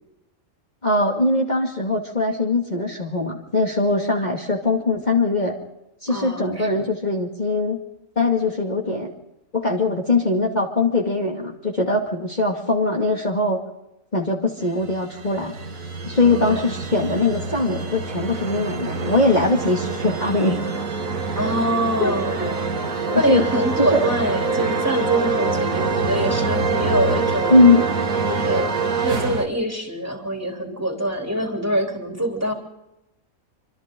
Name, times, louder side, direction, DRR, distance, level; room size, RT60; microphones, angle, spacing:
voice 1, 0.8-5.5 6.0-7.8 8.2-9.1 9.5-13.6 14.1-15.5 16.0-20.6 22.0-22.7 23.1-23.4 23.8-24.0 27.5-27.8, left 2 dB, 30° left, -1 dB, 2.4 m, -21 dB
voice 2, 6.1-6.9 16.2-16.8 21.4-22.4 23.1-27.6 28.3-28.7 29.0-32.5, equal, 10° right, 1 dB, 3.3 m, -24 dB
sound 1, 14.7-29.4, right 4 dB, 70° right, 2.3 m, -25 dB
26.5 x 26.0 x 3.8 m, 0.89 s
omnidirectional pair, 1.5 m